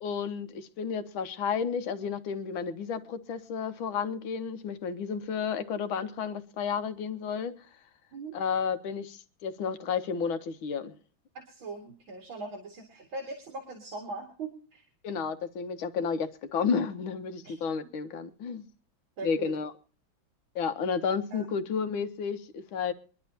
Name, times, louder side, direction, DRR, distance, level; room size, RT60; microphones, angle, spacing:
voice 1, 0.0-7.7 8.3-11.0 15.0-18.6 19.2-19.7 20.6-22.9, left 6 dB, 85° left, 1.8 m, -32 dB
voice 2, 11.3-14.8 17.4-17.5 19.2-19.5 21.3-21.5, right 3 dB, 80° right, 3.0 m, -40 dB
24.5 x 11.0 x 2.8 m
omnidirectional pair, 2.2 m